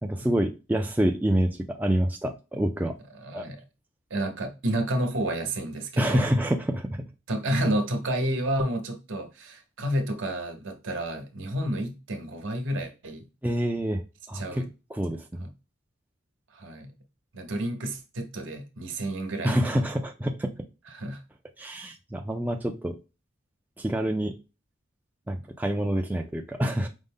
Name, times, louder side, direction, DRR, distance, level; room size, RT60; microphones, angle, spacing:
voice 1, 0.0-3.0 3.3-3.5 6.0-7.0 13.4-14.0 14.3-15.5 19.4-20.5 21.6-23.0 23.8-24.4 25.3-26.9, right 1 dB, 10° right, 0.3 m, -27 dB
voice 2, 3.1-3.6 4.1-6.3 7.3-13.2 14.3-14.7 15.4-15.5 16.5-16.9 17.3-19.8 20.9-21.2 25.4-25.5, right 1 dB, 65° right, 0.9 m, -30 dB
5.2 x 2.1 x 3.5 m
head